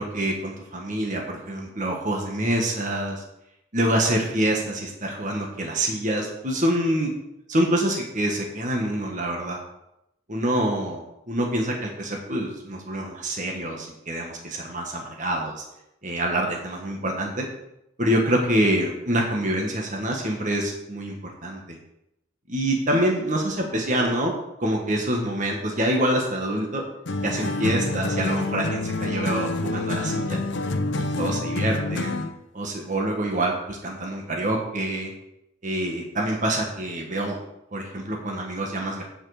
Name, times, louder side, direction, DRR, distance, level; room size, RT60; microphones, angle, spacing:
voice 1, 0.0-3.2 3.7-7.1 7.5-9.6 10.3-11.0 11.3-15.6 16.0-17.5 18.0-21.8 22.5-24.3 24.6-26.8 27.2-30.4 31.0-32.2 32.5-35.1 35.6-37.4 37.7-39.0, right 1 dB, 40° right, 0 dB, 1.6 m, -26 dB
sound 1, 27.1-32.4, left 2 dB, 60° left, 0.7 m, -27 dB
8.8 x 7.5 x 5.0 m, 0.83 s
head